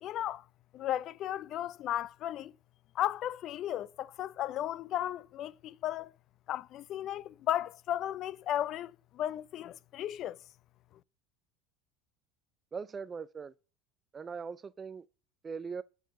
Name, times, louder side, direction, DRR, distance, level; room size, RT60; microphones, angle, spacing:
voice 1, 0.0-0.4 0.7-2.5 2.9-6.1 6.5-10.4, left 12 dB, 50° left, 0.4 m, -35 dB
voice 2, 12.7-13.5 14.1-15.1 15.4-15.8, right 5 dB, 25° right, 0.3 m, -40 dB
9.2 x 4.7 x 6.7 m
supercardioid pair, 95°, 0 cm